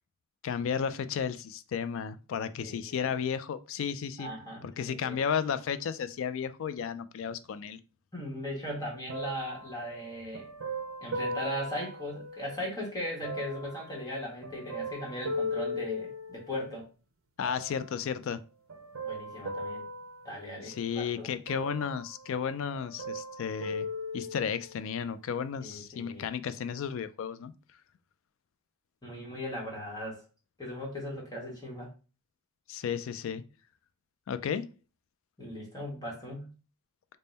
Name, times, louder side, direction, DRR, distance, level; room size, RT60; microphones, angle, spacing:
voice 1, 0.4-4.3 4.6-7.8 17.4-18.4 20.6-23.9 24.1-27.5 32.7-33.4 34.3-34.7, left 7 dB, 65° left, 0.3 m, -33 dB
voice 2, 2.6-2.9 4.2-5.2 8.1-10.5 11.0-16.9 19.0-19.8 20.2-21.3 25.6-26.2 29.0-30.2 30.6-31.9 35.4-36.5, equal, 20° left, 1.1 m, -38 dB
sound 1, 9.1-12.7 13.2-16.7 17.4-18.1 18.7-21.0 21.5-22.5 22.7-24.8 25.4-25.5, left 1 dB, 70° right, 0.6 m, -38 dB
3.5 x 2.1 x 4.0 m
head